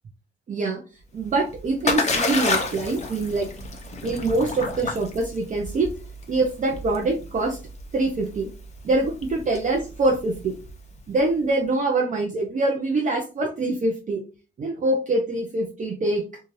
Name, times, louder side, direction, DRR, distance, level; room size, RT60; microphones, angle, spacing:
voice 1, 0.5-0.8 1.1-3.5 4.0-5.9 6.3-7.6 7.9-8.5 8.8-10.6 11.1-14.2 14.6-16.2, right 2 dB, 40° right, 1 dB, 0.5 m, -24 dB
Splash splatter, 1.2-11.0, left 3 dB, 35° left, 0.7 m, -30 dB
2.7 x 2.3 x 3.0 m, 0.34 s
cardioid pair, 115°, 21 cm